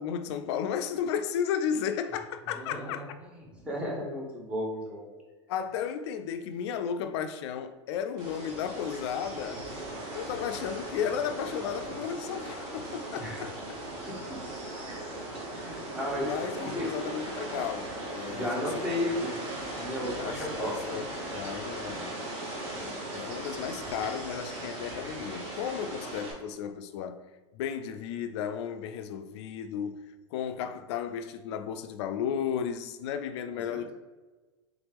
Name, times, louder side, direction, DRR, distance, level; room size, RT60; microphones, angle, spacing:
voice 1, 0.0-3.1 5.5-9.6 10.1-13.8 16.2-19.2 20.2-22.2 22.4-27.2 27.5-33.9, left 8 dB, 65° left, 0.4 m, -34 dB
voice 2, 2.6-3.0 3.6-5.1 13.2-13.5 15.3-16.3 16.6-16.9 18.3-21.0 33.7-33.9, left 1 dB, 5° right, 0.9 m, -34 dB
sound 1, 8.2-26.3, right 1 dB, 40° right, 1.1 m, -38 dB
3.6 x 3.0 x 3.4 m
supercardioid pair, 145°, 15 cm